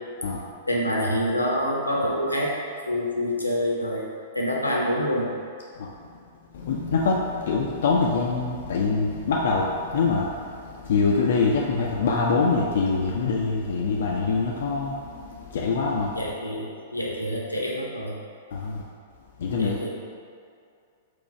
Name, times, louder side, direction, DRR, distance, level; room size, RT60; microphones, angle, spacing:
voice 1, 0.7-2.5 2.9-4.1 4.3-5.3 16.2-18.1 19.6-19.9, equal, 85° left, -3 dB, 0.7 m, -26 dB
voice 2, 6.5-16.2 18.5-18.8 19.4-19.8, left 4 dB, 55° left, -2 dB, 0.4 m, -24 dB
4.6 x 2.3 x 4.3 m, 2.4 s
figure-of-eight pair, 105°, 0 cm